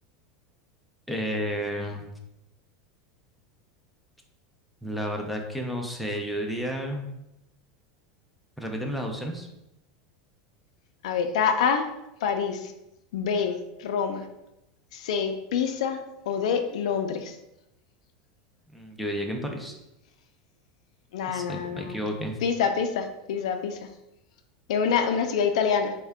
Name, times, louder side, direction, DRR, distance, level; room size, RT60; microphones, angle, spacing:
voice 1, 1.1-2.1 4.8-7.1 8.6-9.5 18.7-19.8 21.3-22.4, equal, ahead, 1 dB, 0.4 m, -31 dB
voice 2, 11.0-11.9 12.2-12.7 13.1-14.3 14.9-17.4 21.1-21.9 22.4-23.8 24.7-25.9, left 6 dB, 90° left, 6 dB, 0.4 m, -26 dB
3.6 x 2.1 x 3.4 m, 0.88 s
supercardioid pair, 160°, 3 cm